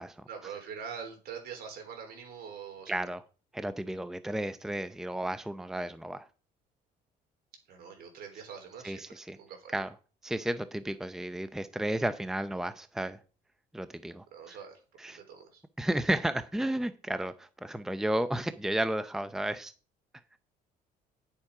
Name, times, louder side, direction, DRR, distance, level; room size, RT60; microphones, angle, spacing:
voice 1, 0.3-3.0 7.7-9.0 9.4-9.8 14.3-14.8 15.0-15.6, right 7 dB, 65° right, 3.9 m, -44 dB
voice 2, 2.9-3.2 3.5-6.3 8.8-9.4 9.7-9.9 10.2-13.2 13.7-14.6 15.0-15.2 15.8-19.7, right 1 dB, 5° right, 0.6 m, -33 dB
10.5 x 7.3 x 4.9 m
cardioid pair, 110°, 17 cm